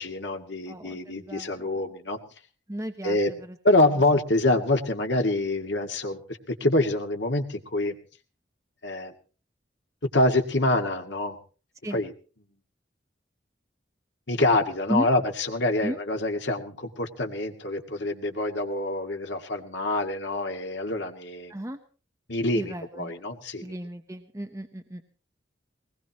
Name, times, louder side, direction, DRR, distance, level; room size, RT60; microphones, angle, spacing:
voice 1, 0.0-2.2 3.0-3.3 3.6-8.0 8.8-9.1 10.1-11.4 11.9-12.1 14.3-21.5 22.3-23.7, left 2 dB, 80° left, 4 dB, 2.2 m, -26 dB
voice 2, 0.7-1.7 2.7-3.6 3.9-4.0 11.8-12.0 14.9-15.1 15.8-16.0 21.5-21.8 22.5-23.2 23.6-25.0, equal, 15° right, 5 dB, 1.0 m, -34 dB
21.0 x 20.0 x 3.0 m, 0.37 s
head